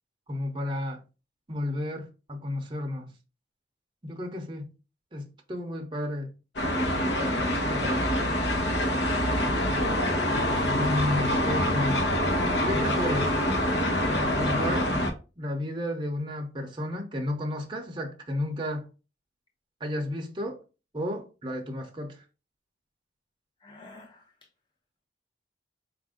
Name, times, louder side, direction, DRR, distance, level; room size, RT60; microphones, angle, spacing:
voice 1, 0.3-1.0 1.5-3.1 4.0-4.7 5.1-6.3 7.0-7.2 7.6-8.3 10.6-12.0 12.6-13.4 14.4-14.9 15.4-18.9 19.8-20.6 20.9-22.2, left 1 dB, 25° right, 0.6 m, -32 dB
sound 1, 6.6-15.1, left 1 dB, 70° left, 1.0 m, -25 dB
voice 2, 13.9-14.2 23.6-24.2, left 1 dB, 25° left, 0.9 m, -46 dB
4.4 x 2.5 x 3.6 m
head